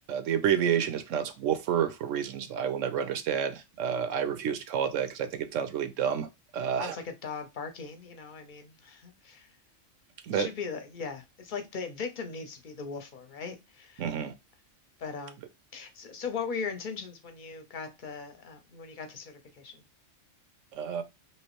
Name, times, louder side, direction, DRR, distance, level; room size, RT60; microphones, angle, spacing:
voice 1, 0.1-6.3 6.5-7.0 10.2-10.5 14.0-14.3 20.7-21.0, right 8 dB, 80° right, 1.0 m, -29 dB
voice 2, 6.8-9.5 10.3-14.0 15.0-15.4 15.7-19.8, left 5 dB, 45° left, 0.8 m, -39 dB
3.2 x 3.0 x 3.0 m
omnidirectional pair, 1.3 m